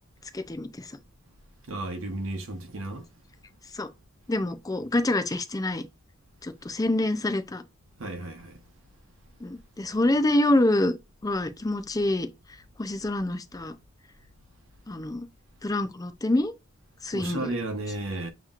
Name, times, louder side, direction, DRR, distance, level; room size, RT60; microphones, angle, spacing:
voice 1, 0.3-0.9 3.7-3.9 4.3-5.8 6.4-7.6 9.4-10.9 11.2-12.3 12.8-13.8 14.9-15.3 15.6-16.5 17.0-17.5, left 1 dB, 20° left, 0.5 m, -26 dB
voice 2, 1.7-3.1 8.0-8.6 17.1-18.3, right 2 dB, 80° right, 0.9 m, -33 dB
7.2 x 3.0 x 2.4 m
head